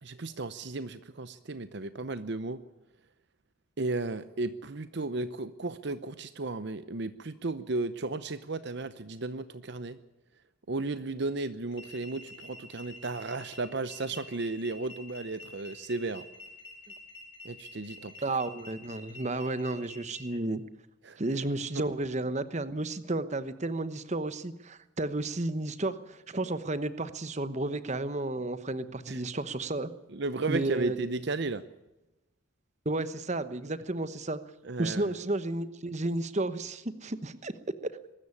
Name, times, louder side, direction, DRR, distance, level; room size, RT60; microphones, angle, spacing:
voice 1, 0.0-2.6 3.8-10.0 10.7-16.2 17.4-18.1 21.0-21.2 21.8-21.9 29.1-29.2 30.1-31.6 34.6-35.2, right 3 dB, 55° right, 13 dB, 0.8 m, -34 dB
sound 1, 11.7-20.2, left 2 dB, 65° left, 5.5 m, -48 dB
voice 2, 18.2-20.6 21.2-29.9 30.5-31.0 32.8-34.4 34.8-37.5 37.8-38.0, right 2 dB, 35° right, 13 dB, 1.1 m, -32 dB
22.5 x 13.5 x 9.7 m, 1.0 s
head